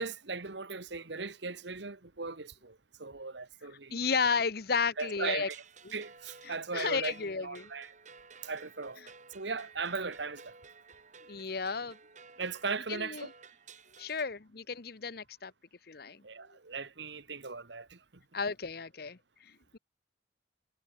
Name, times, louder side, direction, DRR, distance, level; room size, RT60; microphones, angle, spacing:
voice 1, 0.0-4.0 5.0-5.6 5.9-7.1 7.4-7.9 8.4-9.0 9.3-10.5 12.4-13.3 16.2-18.0, right 4 dB, 70° right, 1.6 m, -38 dB
voice 2, 3.9-5.5 5.8-5.9 6.5-7.7 11.3-12.0 12.9-13.3 14.0-15.5 15.9-16.2 18.3-19.8, left 5 dB, 55° left, 0.9 m, -33 dB
sound 1, 4.9-14.3, right 5 dB, 40° right, 4.7 m, -54 dB
head